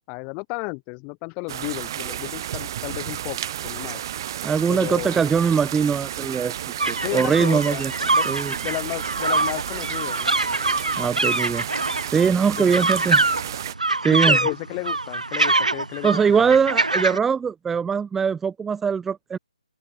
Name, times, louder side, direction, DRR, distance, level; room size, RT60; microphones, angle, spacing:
voice 1, 0.1-4.0 4.7-5.3 7.0-8.3 8.6-10.3 12.6-12.8 14.0-16.6, left 37 dB, 20° left, 5.1 m, -33 dB
sound 1, 1.5-13.8, right 11 dB, 35° right, 1.1 m, -32 dB
voice 2, 4.4-7.9 8.3-8.5 11.0-11.6 12.1-13.2 14.0-14.4 16.0-19.4, right 6 dB, 5° right, 0.7 m, -22 dB
sound 2, 6.8-17.2, right 2 dB, 85° right, 0.5 m, -24 dB
open air
figure-of-eight pair, 145°, 4 cm